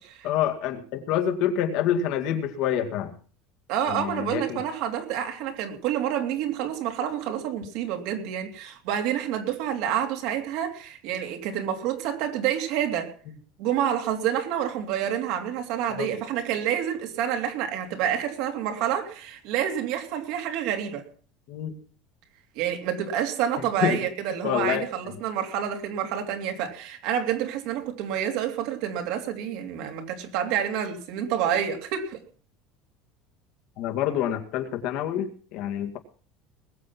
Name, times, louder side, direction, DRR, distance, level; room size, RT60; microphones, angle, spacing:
voice 1, 0.2-3.1 3.9-4.6 16.0-16.1 21.5-21.7 23.8-24.0 24.4-24.8 33.8-36.0, left 9 dB, 60° left, 6 dB, 2.0 m, -27 dB
voice 2, 3.7-13.1 13.6-21.1 22.5-32.2, right 9 dB, 65° right, 4 dB, 3.0 m, -28 dB
20.5 x 7.7 x 5.9 m, 0.42 s
cardioid pair, 150°, 0 cm